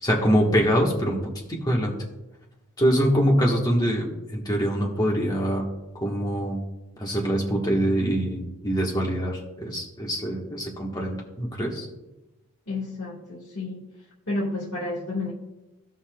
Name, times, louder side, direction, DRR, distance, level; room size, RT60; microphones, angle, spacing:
voice 1, 0.0-1.2 1.5-1.9 2.8-5.7 6.0-6.6 7.0-11.9, equal, 15° left, -2 dB, 1.3 m, -24 dB
voice 2, 12.7-13.8 14.3-15.3, left 2 dB, 60° left, -6 dB, 1.6 m, -30 dB
15.5 x 5.5 x 2.3 m, 1.0 s
head